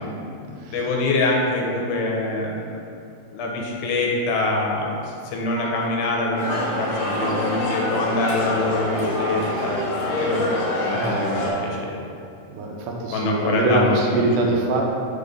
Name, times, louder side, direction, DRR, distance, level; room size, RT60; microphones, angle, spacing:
voice 1, 0.0-2.8 3.3-9.8 10.2-10.5 10.9-12.0 13.1-14.3, left 2 dB, 75° left, -1 dB, 2.2 m, -25 dB
Telephone, 5.6-5.8 6.3-6.5 7.0-7.3 7.7-8.0 8.4-8.7 9.1-9.4 9.9-10.1 10.6-10.8 11.3-11.6, left 1 dB, 50° right, 1.0 m, -33 dB
sound 1, 6.4-11.5, left 1 dB, 55° left, 2.0 m, -26 dB
voice 2, 10.9-11.5 12.5-14.8, right 2 dB, 80° right, 0 dB, 2.1 m, -23 dB
5.2 x 4.1 x 5.2 m, 2.6 s
omnidirectional pair, 3.8 m